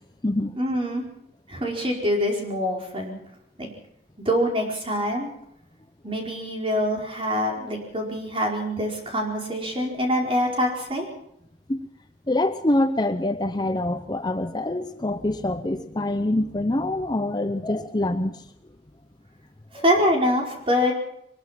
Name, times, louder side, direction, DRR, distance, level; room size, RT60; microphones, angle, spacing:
voice 1, 0.5-1.0 1.5-3.2 3.6-3.7 4.2-5.3 6.0-11.0 19.7-20.9, equal, 30° right, 0 dB, 4.9 m, -25 dB
voice 2, 12.3-18.4 19.7-19.8, left 1 dB, 25° left, 9 dB, 0.7 m, -25 dB
23.0 x 20.5 x 5.9 m, 0.72 s
head